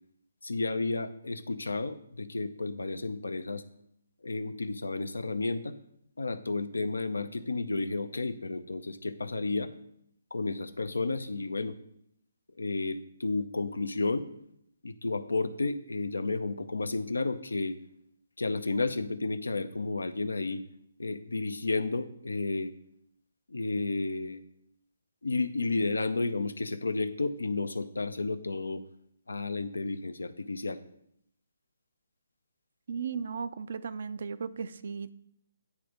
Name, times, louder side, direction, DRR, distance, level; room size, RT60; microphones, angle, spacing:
voice 1, 0.4-3.6 4.2-5.7 6.2-9.7 10.3-11.7 12.6-14.3 14.8-17.8 18.4-20.6 21.0-22.7 23.5-24.4 25.2-28.8 29.3-30.8, left 3 dB, 80° left, 11 dB, 0.6 m, -32 dB
voice 2, 32.9-35.1, right 6 dB, 55° right, 13 dB, 0.5 m, -36 dB
9.6 x 3.4 x 5.1 m, 0.73 s
figure-of-eight pair, 140°, 0 cm